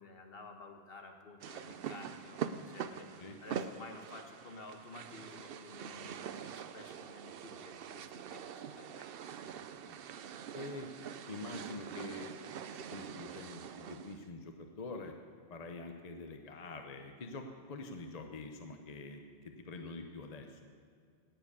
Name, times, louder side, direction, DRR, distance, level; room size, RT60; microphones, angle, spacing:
voice 1, 0.0-9.1, left 3 dB, 60° left, 3 dB, 1.5 m, -52 dB
sound 1, 1.4-14.2, right 7 dB, 65° right, 0.8 m, -44 dB
voice 2, 9.4-9.9 10.5-10.9 11.3-12.3 12.7-15.1 15.5-20.6, left 3 dB, 40° left, 5 dB, 0.9 m, -46 dB
17.5 x 7.5 x 6.8 m, 2.3 s
omnidirectional pair, 1.1 m